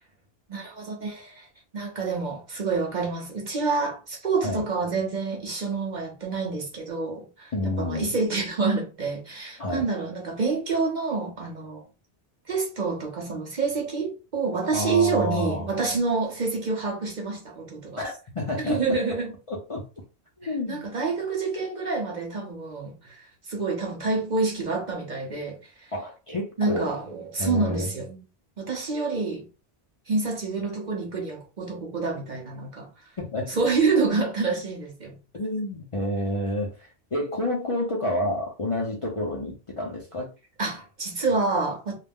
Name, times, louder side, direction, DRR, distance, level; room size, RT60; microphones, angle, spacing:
voice 1, 0.5-1.5 1.7-11.8 12.5-18.0 18.6-19.3 20.7-25.6 26.6-28.2 28.6-29.5 30.1-32.9 33.5-35.2 40.6-42.0, right 4 dB, 45° right, 0.8 m, -27 dB
voice 2, 7.5-8.2 9.6-9.9 14.7-15.7 18.0-18.8 19.5-19.8 20.4-20.8 25.9-27.0 27.4-27.9 33.2-33.5 35.3-40.3, left 1 dB, 40° left, 0.5 m, -29 dB
2.3 x 2.0 x 3.5 m
omnidirectional pair, 1.1 m